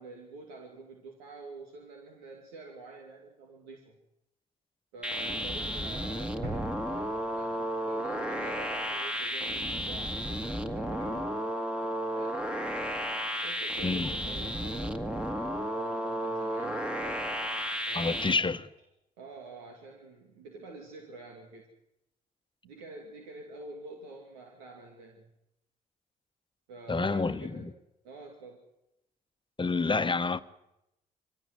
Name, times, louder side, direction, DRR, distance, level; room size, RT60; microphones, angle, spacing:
voice 1, 0.0-4.0 4.9-12.4 13.4-17.3 17.9-18.5 19.2-21.7 22.6-25.2 26.7-27.7 28.0-28.6, right 3 dB, 90° right, 2.4 m, -47 dB
sound 1, 5.0-18.3, equal, 5° right, 2.0 m, -33 dB
sound 2, 6.4-8.4 8.7-8.9, right 2 dB, 65° right, 3.3 m, -43 dB
voice 2, 13.8-14.1 17.9-18.7 26.9-27.7 29.6-30.4, left 4 dB, 25° left, 1.2 m, -28 dB
24.0 x 16.5 x 8.1 m
hypercardioid pair, 50°, 18 cm